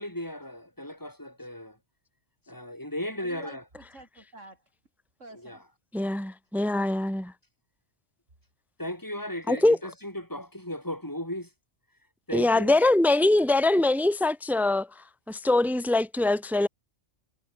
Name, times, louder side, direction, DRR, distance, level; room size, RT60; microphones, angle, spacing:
voice 1, 0.0-1.8 2.5-3.6 5.4-5.6 8.8-11.5 12.3-12.8 13.8-13.9, left 1 dB, 15° left, 7.9 m, -36 dB
voice 2, 3.2-4.7 5.2-5.6 6.7-7.1, right 2 dB, 85° right, 6.2 m, -49 dB
voice 3, 5.9-7.3 9.5-9.8 12.3-14.9 15.3-16.7, left 2 dB, ahead, 1.3 m, -23 dB
omnidirectional pair, 1.2 m